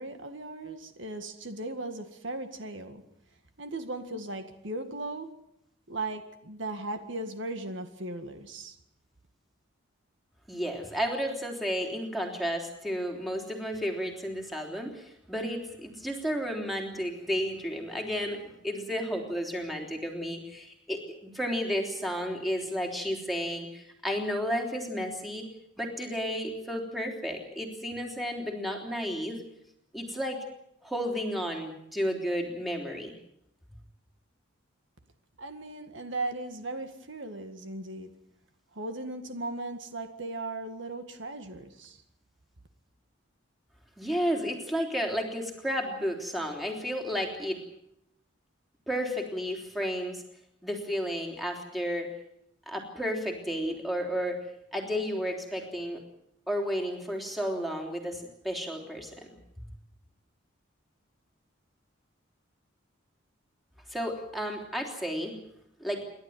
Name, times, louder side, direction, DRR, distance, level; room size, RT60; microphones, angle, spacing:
voice 1, 0.0-3.0 3.6-5.3 5.9-8.8 35.4-38.1 38.7-42.0, right 2 dB, 70° right, 7 dB, 1.9 m, -37 dB
voice 2, 10.5-25.5 25.8-29.4 29.9-30.4 30.8-33.1 44.0-47.6 48.9-50.2 50.6-52.1 52.7-54.4 54.7-56.0 56.5-59.3 63.9-65.4 65.8-66.0, equal, ahead, 1 dB, 3.3 m, -32 dB
28.5 x 12.0 x 9.4 m, 0.79 s
head